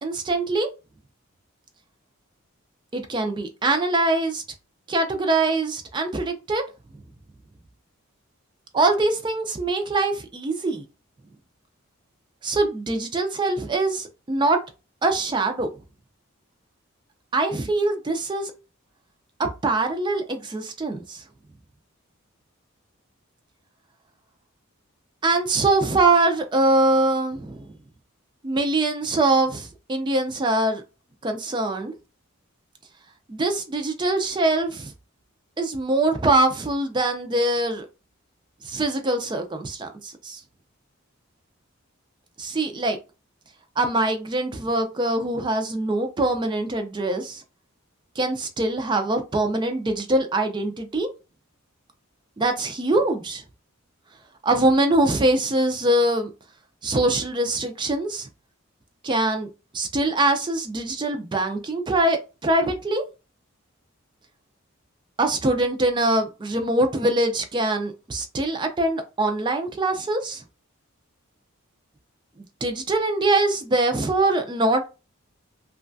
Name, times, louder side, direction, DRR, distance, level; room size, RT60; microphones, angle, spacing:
voice 1, 0.0-0.7 2.9-4.4 4.9-6.6 8.7-10.8 12.4-14.6 15.0-15.7 17.3-18.5 19.4-21.2 25.2-27.7 28.4-30.8 31.2-32.0 33.3-34.9 35.6-37.9 38.6-40.4 42.4-43.0 43.8-47.4 48.2-51.1 52.4-53.4 54.4-56.3 56.8-58.3 59.0-59.5 59.7-63.0 65.2-70.4 72.6-74.9, right 2 dB, 20° right, 0.4 m, -23 dB
3.1 x 2.2 x 2.5 m
head